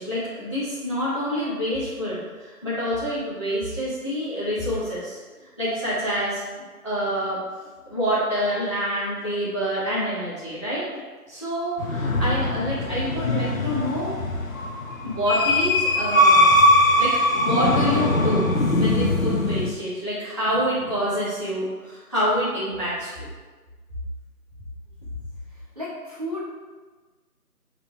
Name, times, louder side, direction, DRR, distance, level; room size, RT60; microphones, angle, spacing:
voice 1, 0.0-5.2 5.6-6.4 6.8-7.4 7.9-10.8 11.3-14.4 15.0-16.5 16.8-18.4 18.7-23.3, equal, 20° left, -11 dB, 1.0 m, -27 dB
sound 1, 11.8-19.7, left 1 dB, 60° left, 1.0 m, -21 dB
voice 2, 25.5-26.4, left 1 dB, 25° right, -7 dB, 1.2 m, -34 dB
10.0 x 3.8 x 3.3 m, 1.3 s
figure-of-eight pair, 165°, 46 cm